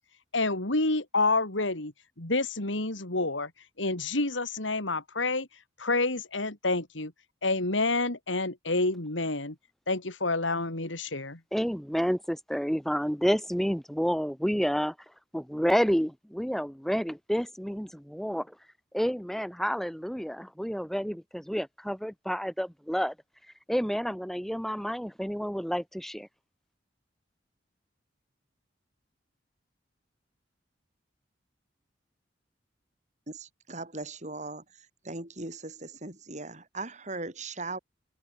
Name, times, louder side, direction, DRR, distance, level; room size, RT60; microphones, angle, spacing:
voice 1, 0.3-1.9 2.2-3.5 3.8-5.5 5.8-7.1 7.4-9.6 9.9-11.4, left 2 dB, 90° left, 3.7 m, -28 dB
voice 2, 11.5-14.9 15.3-18.5 18.9-23.1 23.7-26.3, equal, ahead, 6.8 m, -29 dB
voice 3, 33.3-34.6 35.0-37.8, right 3 dB, 40° right, 6.6 m, -38 dB
open air
head